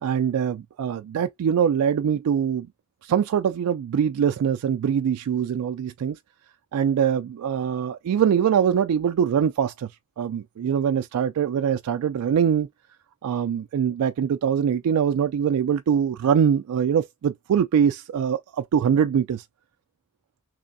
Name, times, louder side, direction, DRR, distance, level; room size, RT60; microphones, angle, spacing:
voice 1, 0.0-2.7 3.0-6.2 6.7-9.9 10.2-12.7 13.2-19.4, right 8 dB, 85° right, 0.3 m, -23 dB
3.3 x 3.1 x 2.6 m
head